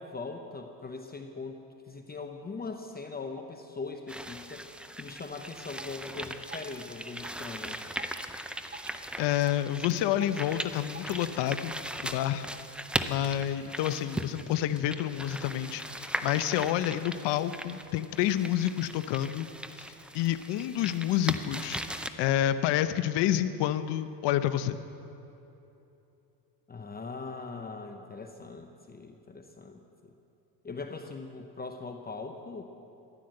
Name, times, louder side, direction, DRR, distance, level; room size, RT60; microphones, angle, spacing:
voice 1, 0.0-1.6 1.9-4.6 5.0-7.8 26.7-30.1 30.6-32.6, left 4 dB, 20° left, 5 dB, 0.8 m, -41 dB
sound 1, 4.1-22.1, right 1 dB, ahead, 0.5 m, -39 dB
sound 2, 5.3-5.4 5.7-6.0 6.5-6.8 7.2-7.4 8.0-8.2 8.7-9.1 9.4-9.6 10.2-10.4 10.9-11.1, right 5 dB, 25° right, 1.2 m, -45 dB
voice 2, 9.2-11.8 12.0-12.5 13.1-19.5 20.1-24.8, left 12 dB, 70° left, 11 dB, 0.8 m, -29 dB
14.5 x 11.5 x 7.7 m, 2.9 s
cardioid pair, 120°, 45 cm